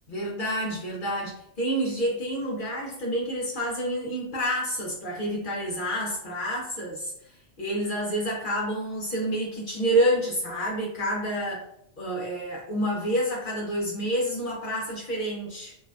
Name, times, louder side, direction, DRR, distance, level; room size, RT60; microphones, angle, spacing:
voice 1, 0.1-7.1 7.6-11.6 12.0-15.8, equal, 55° left, -3 dB, 0.6 m, -28 dB
2.6 x 2.1 x 2.4 m, 0.74 s
omnidirectional pair, 1.4 m